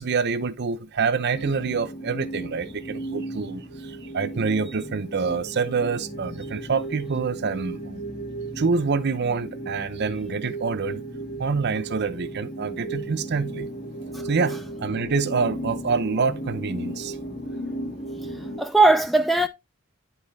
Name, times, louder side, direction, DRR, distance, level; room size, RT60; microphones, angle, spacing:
voice 1, 0.0-8.0 8.6-11.0 11.4-13.7 14.2-17.2, right 5 dB, 55° right, 0.6 m, -26 dB
sound 1, 1.3-18.6, right 1 dB, 35° left, 1.7 m, -35 dB
voice 2, 18.2-19.5, right 2 dB, ahead, 0.4 m, -20 dB
10.5 x 4.2 x 4.0 m
head